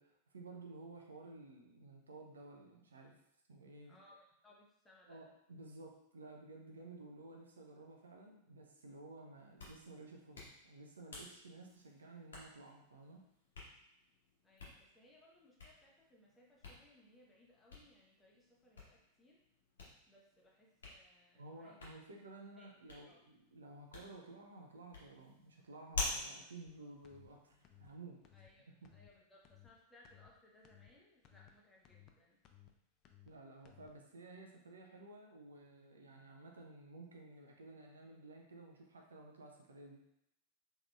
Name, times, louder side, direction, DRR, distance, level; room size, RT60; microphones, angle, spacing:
voice 1, 0.0-3.2 3.5-4.0 5.1-13.3 21.4-28.2 28.8-28.9 33.3-40.0, right 2 dB, 70° right, 1 dB, 0.5 m, -54 dB
voice 2, 3.9-5.2 14.4-19.4 20.1-21.9 22.6-22.7 23.0-23.2 28.3-32.4, left 1 dB, 10° left, -4 dB, 0.9 m, -66 dB
Hands, 9.3-27.9, left 3 dB, 65° left, 1.0 m, -50 dB
sound 1, 26.7-26.8 27.0-27.3 27.6-27.9 28.2-28.5 28.8-29.1 29.4-29.7 30.0-30.3 30.6-30.9 31.2-31.5 31.8-32.1 32.4-32.7 33.0-33.3 33.6-33.9, left 11 dB, 35° left, 0.4 m, -62 dB
3.6 x 3.1 x 2.3 m, 0.80 s
figure-of-eight pair, 90°, 0 cm